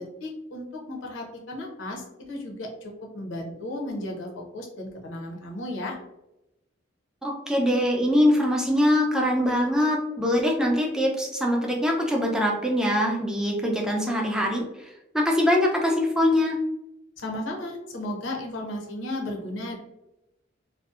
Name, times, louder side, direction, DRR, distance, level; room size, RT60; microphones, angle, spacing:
voice 1, 0.0-6.0 17.2-19.8, left 1 dB, 85° left, 0 dB, 0.6 m, -34 dB
voice 2, 7.2-14.6 15.1-16.6, left 1 dB, 5° right, -1 dB, 0.4 m, -23 dB
2.6 x 2.0 x 2.4 m, 0.90 s
head